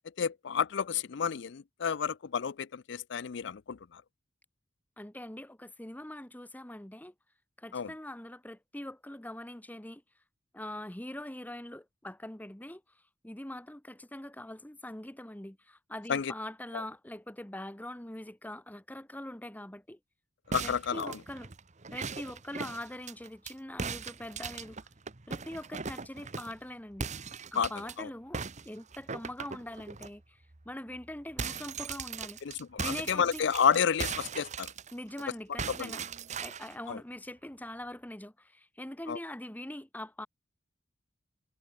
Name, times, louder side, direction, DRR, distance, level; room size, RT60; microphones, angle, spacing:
voice 1, 0.2-4.0 7.7-7.9 16.1-16.3 20.5-21.2 27.6-27.7 28.0-28.1 32.4-34.7 35.8-36.0 36.9-37.0 39.1-39.2, left 7 dB, 65° left, 0.5 m, -30 dB
voice 2, 5.0-7.1 7.6-10.0 10.5-12.8 13.2-20.0 20.6-21.5 21.9-24.8 25.3-27.1 27.5-30.4 30.6-32.4 32.8-33.4 34.9-36.1 36.4-40.3, left 1 dB, 10° left, 1.2 m, -43 dB
sound 1, 20.5-23.5 23.8-26.6 27.0-27.9 28.3-30.1 30.5-30.7 30.9-35.2 35.6-36.8, right 5 dB, 40° right, 1.1 m, -39 dB
head